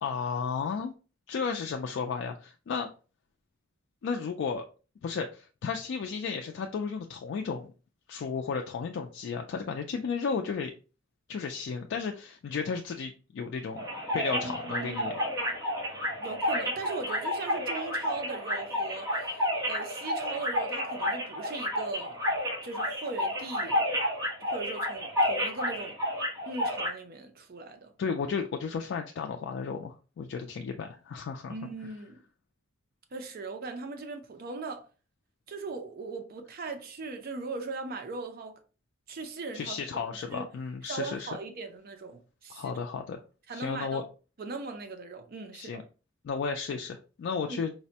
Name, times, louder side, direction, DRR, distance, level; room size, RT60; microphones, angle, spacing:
voice 1, 0.0-0.9 1.3-2.9 4.0-4.6 5.0-7.7 8.1-10.7 11.3-13.8 14.1-15.2 28.0-31.5 39.5-41.3 42.5-43.2 43.5-44.0 45.5-45.8 46.2-47.7, left 5 dB, 60° left, 0.3 m, -33 dB
sound 1, 13.8-26.9, equal, 15° right, 0.9 m, -31 dB
voice 2, 14.4-15.1 16.2-22.2 22.6-23.8 24.4-26.0 26.5-27.9 31.5-32.2 33.1-34.9 35.5-38.6 39.1-39.8 40.3-40.5 40.8-43.0 43.5-44.0 44.4-45.8 47.5-47.6, right 3 dB, 50° right, 0.5 m, -39 dB
4.0 x 2.1 x 2.7 m
head